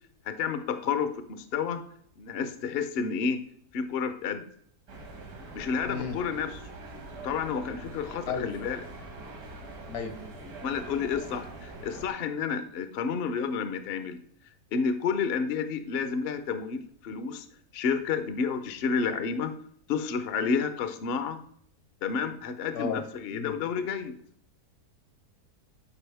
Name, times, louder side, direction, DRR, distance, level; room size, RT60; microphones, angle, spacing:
voice 1, 0.2-1.8 2.2-3.4 3.7-4.4 5.5-6.6 7.2-8.8 10.6-14.2 14.7-17.5 17.7-19.5 19.9-21.4 22.0-24.1, left 6 dB, 55° left, 10 dB, 0.7 m, -30 dB
sound 1, 4.9-12.1, right 2 dB, 75° right, 2.0 m, -43 dB
voice 2, 5.8-6.2 8.3-8.5 9.9-10.2 22.7-23.0 23.3-23.5, left 6 dB, 75° left, 7 dB, 1.6 m, -33 dB
11.0 x 4.7 x 3.4 m, 0.62 s
omnidirectional pair, 1.6 m